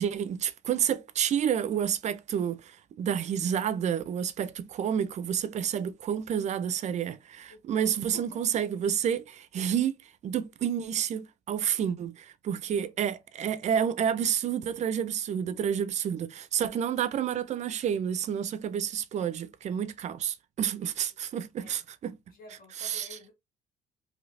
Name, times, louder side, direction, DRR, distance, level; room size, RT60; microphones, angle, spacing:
voice 1, 0.0-10.0 10.2-22.2 22.8-23.1, right 9 dB, 45° right, 0.4 m, -29 dB
voice 2, 7.5-8.4 8.9-9.0 12.6-13.0 21.1-21.8 22.3-23.3, left 2 dB, 60° left, 1.2 m, -52 dB
3.2 x 2.7 x 2.5 m
cardioid pair, 110°, 17 cm